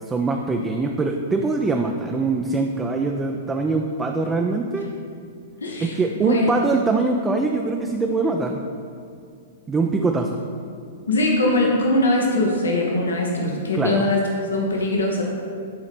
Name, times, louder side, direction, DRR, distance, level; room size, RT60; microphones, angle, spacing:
voice 1, 0.1-4.9 5.8-8.6 9.7-10.4 13.7-14.0, right 3 dB, 15° right, 2 dB, 0.4 m, -23 dB
voice 2, 5.6-6.0 6.2-6.5 11.1-15.2, left 1 dB, 75° left, 0 dB, 1.1 m, -21 dB
10.5 x 4.0 x 4.2 m, 2.3 s
figure-of-eight pair, 105°, 0 cm